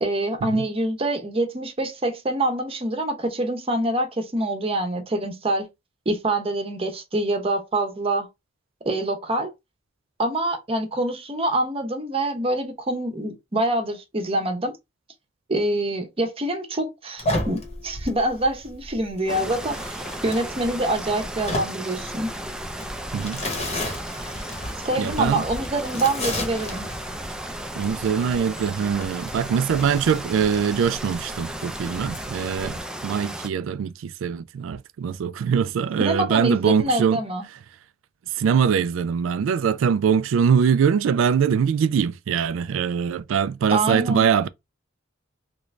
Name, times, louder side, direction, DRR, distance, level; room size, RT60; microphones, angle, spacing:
voice 1, 0.0-5.7 6.1-8.3 8.8-9.5 10.2-14.7 15.5-22.3 24.8-26.8 36.0-37.4 43.7-44.3, right 1 dB, 30° right, 0.7 m, -25 dB
sound 1, 17.2-32.8, left 1 dB, 35° left, 0.9 m, -34 dB
sound 2, 19.3-33.5, right 1 dB, 5° right, 0.3 m, -35 dB
voice 2, 25.0-25.4 27.8-37.2 38.3-44.5, right 7 dB, 80° right, 0.3 m, -22 dB
3.0 x 2.5 x 3.1 m
head